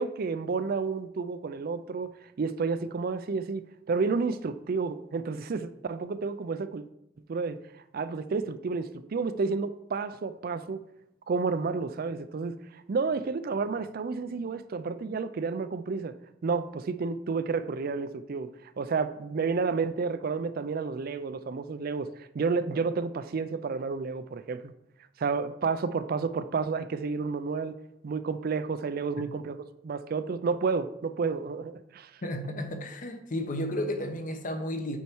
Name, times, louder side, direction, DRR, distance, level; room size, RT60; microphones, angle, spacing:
voice 1, 0.0-2.1 2.4-6.8 7.3-7.6 7.9-10.8 11.3-16.1 16.4-18.5 18.8-22.1 22.3-24.7 25.2-27.8 28.0-29.6 29.8-32.1, right 4 dB, 50° right, 12 dB, 0.4 m, -30 dB
voice 2, 32.2-35.0, left 1 dB, 45° left, 6 dB, 0.9 m, -33 dB
8.4 x 4.5 x 4.5 m, 0.80 s
head